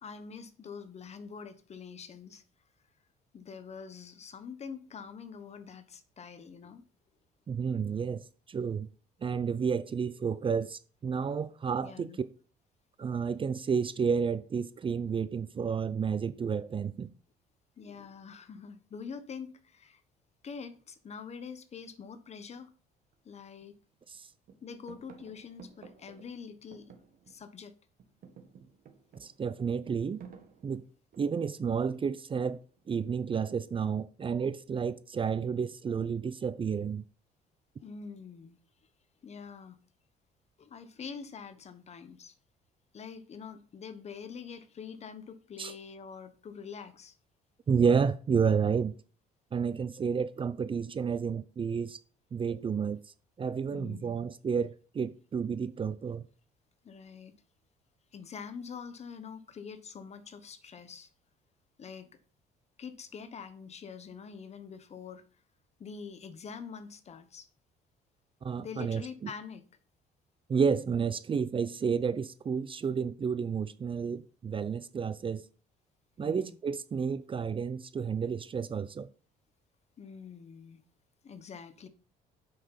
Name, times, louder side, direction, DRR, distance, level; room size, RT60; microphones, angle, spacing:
voice 1, 0.0-2.4 3.3-6.8 11.8-12.2 17.8-20.0 20.4-22.7 23.2-23.7 24.6-26.9 27.3-27.7 37.8-38.6 39.2-39.8 40.6-42.3 42.9-47.2 53.7-54.2 56.8-57.3 58.1-61.1 61.8-62.1 62.8-65.2 65.8-67.5 68.6-69.6 76.2-76.6 80.0-80.8 81.2-81.9, left 6 dB, 40° left, 1.2 m, -45 dB
voice 2, 7.5-8.9 9.2-12.1 13.0-17.1 29.2-30.2 30.6-30.8 31.2-32.6 32.9-37.0 45.6-45.7 47.7-48.9 49.5-52.0 52.3-53.0 53.4-56.2 68.4-69.3 70.5-75.4 76.2-79.1, right 6 dB, 30° right, 0.6 m, -31 dB
sound 1, 23.0-23.1 23.6-24.2 24.4-27.6 27.9-31.5 32.5-33.0, right 6 dB, 60° right, 1.9 m, -54 dB
8.4 x 5.9 x 5.7 m
cardioid pair, 110°, 17 cm